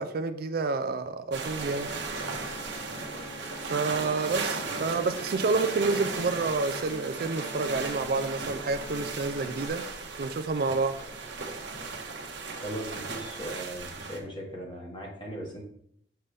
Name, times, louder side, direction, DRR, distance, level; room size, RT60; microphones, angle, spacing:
voice 1, 0.0-1.9 3.6-9.8 10.2-11.0, right 3 dB, 55° right, 0.5 m, -29 dB
sound 1, 1.3-14.2, right 4 dB, 85° right, 1.1 m, -36 dB
Run, 1.6-13.3, equal, 55° left, 3.0 m, -52 dB
sound 2, 1.7-9.7, left 1 dB, 75° left, 1.9 m, -45 dB
voice 2, 12.6-15.6, right 1 dB, 30° left, 1.7 m, -38 dB
6.7 x 5.7 x 3.3 m
head